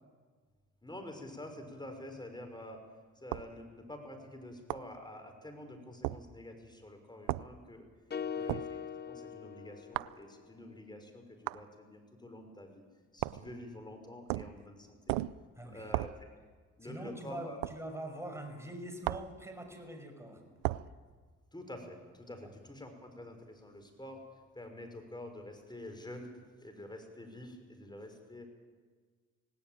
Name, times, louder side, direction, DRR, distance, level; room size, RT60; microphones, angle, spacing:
voice 1, 0.8-2.8 3.2-7.8 8.4-12.8 13.1-15.0 15.6-16.1 16.8-17.6 21.5-24.2 24.6-26.3 26.6-28.5, left 1 dB, 15° left, 5 dB, 5.6 m, -48 dB
sound 1, 3.3-3.5 4.7-4.9 6.0-6.2 7.3-7.5 8.5-8.7 9.9-10.2 11.5-11.6 13.2-13.5 14.3-14.6 15.1-15.4 15.9-16.2 17.6-17.8 19.0-19.3 20.6-20.9, right 18 dB, 90° right, 0.5 m, -35 dB
sound 2, 8.1-10.4, left 7 dB, 30° left, 0.7 m, -41 dB
voice 2, 8.2-8.5 15.6-15.9 16.8-20.6 22.4-22.5, right 1 dB, 10° right, 4 dB, 5.8 m, -44 dB
18.0 x 17.5 x 9.1 m, 1.5 s
supercardioid pair, 55°, 33 cm